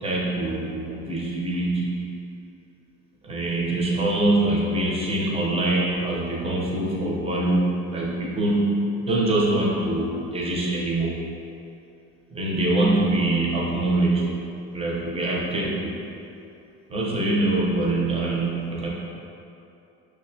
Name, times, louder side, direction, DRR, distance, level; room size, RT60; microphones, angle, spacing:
voice 1, 0.0-2.1 3.2-11.2 12.3-14.3 14.7-16.0 16.9-18.9, right 2 dB, 20° right, -4 dB, 0.6 m, -24 dB
6.2 x 2.2 x 2.6 m, 2.7 s
cardioid pair, 140°, 31 cm